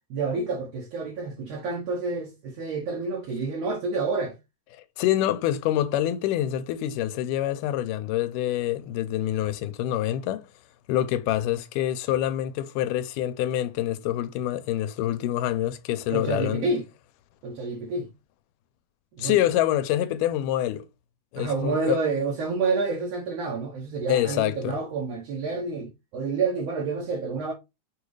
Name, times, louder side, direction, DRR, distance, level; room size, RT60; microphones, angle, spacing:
voice 1, 0.1-4.4 16.1-16.8 17.4-18.1 19.1-19.4 21.3-27.5, right 4 dB, 75° right, 1.5 m, -29 dB
voice 2, 4.7-10.4 10.9-16.7 19.2-20.9 21.3-22.0 24.1-24.8, left 12 dB, 85° left, 2.1 m, -26 dB
6.5 x 2.4 x 3.1 m
omnidirectional pair, 3.6 m